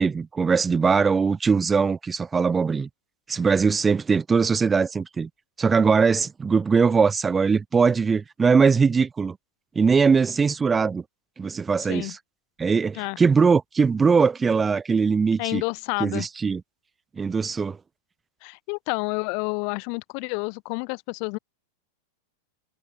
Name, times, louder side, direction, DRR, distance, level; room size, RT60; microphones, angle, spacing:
voice 1, 0.0-2.9 3.3-5.3 5.6-9.4 9.8-11.0 11.4-12.2 12.6-15.6 16.0-16.6 17.2-17.8, right 5 dB, 15° right, 0.8 m, -21 dB
voice 2, 15.4-16.3 18.4-21.4, left 40 dB or more, 45° left, 1.0 m, -29 dB
figure-of-eight pair, 90°, 0 cm